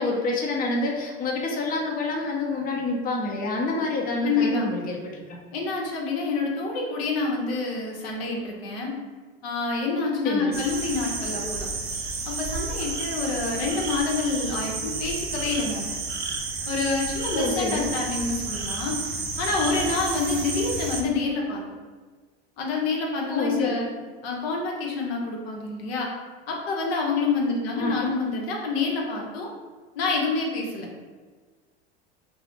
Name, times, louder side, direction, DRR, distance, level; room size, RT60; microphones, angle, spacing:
voice 1, 0.0-5.4 10.2-10.6 17.3-17.8 23.3-23.8 27.7-27.9, left 2 dB, 30° left, -1 dB, 0.6 m, -27 dB
voice 2, 4.2-4.7 5.5-8.9 9.4-11.7 12.2-15.9 16.7-19.0 19.4-21.6 22.6-23.9 24.2-26.1 26.5-29.5 30.0-30.9, left 3 dB, 80° left, -1 dB, 0.7 m, -27 dB
sound 1, 10.5-21.0, right 3 dB, 30° right, 0.5 m, -31 dB
2.4 x 2.0 x 3.5 m, 1.4 s
hypercardioid pair, 85°, 31 cm